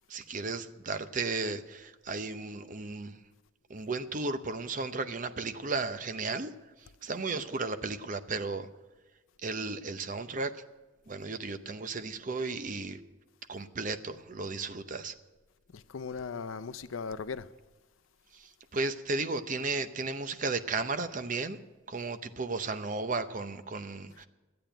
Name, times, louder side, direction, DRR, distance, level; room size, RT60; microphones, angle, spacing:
voice 1, 0.1-3.2 3.7-6.5 7.0-8.7 9.4-10.5 11.1-13.0 13.5-15.1 18.3-21.6 21.9-24.3, right 3 dB, 40° right, 0.7 m, -34 dB
voice 2, 15.7-17.5, left 5 dB, 80° left, 0.5 m, -38 dB
12.5 x 8.7 x 9.0 m
head